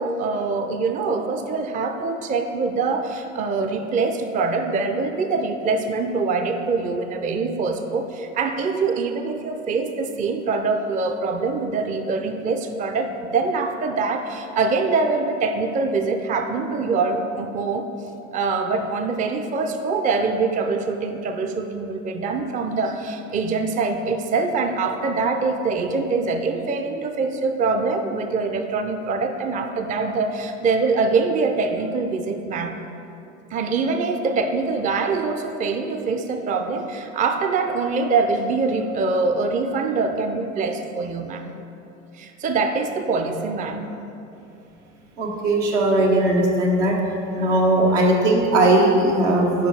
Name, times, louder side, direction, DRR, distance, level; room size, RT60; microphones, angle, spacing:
voice 1, 0.0-17.9 18.3-32.8 33.5-41.5 42.1-43.8 47.4-47.5, right 4 dB, 20° right, 6 dB, 0.4 m, -24 dB
voice 2, 45.2-46.9 47.4-49.7, right 1 dB, 80° right, -1 dB, 1.1 m, -18 dB
5.0 x 4.9 x 5.4 m, 2.8 s
hypercardioid pair, 70°, 37 cm